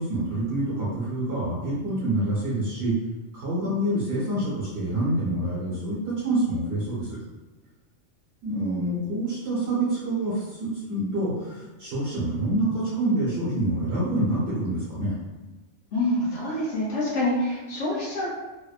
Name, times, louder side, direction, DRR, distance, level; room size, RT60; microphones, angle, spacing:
voice 1, 0.0-2.9 3.3-7.2 8.4-15.1, right 1 dB, 60° right, -8 dB, 1.0 m, -27 dB
voice 2, 15.9-18.3, left 1 dB, 70° left, -7 dB, 0.9 m, -26 dB
2.8 x 2.1 x 2.3 m, 1.2 s
omnidirectional pair, 1.3 m